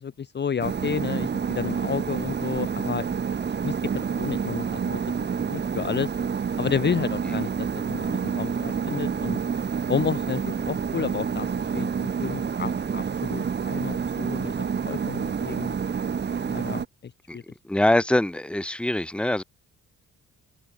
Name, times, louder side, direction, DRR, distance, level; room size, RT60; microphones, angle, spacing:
voice 1, 0.0-3.1 3.6-6.1 6.6-9.4 9.9-11.5 11.7-14.5 14.9-15.8 16.5-17.4, left 7 dB, 35° left, 0.9 m, -31 dB
sound 1, 0.6-16.9, right 6 dB, 35° right, 1.2 m, -28 dB
voice 2, 17.6-19.4, left 1 dB, 5° left, 1.2 m, -23 dB
cardioid pair, 90°, 30 cm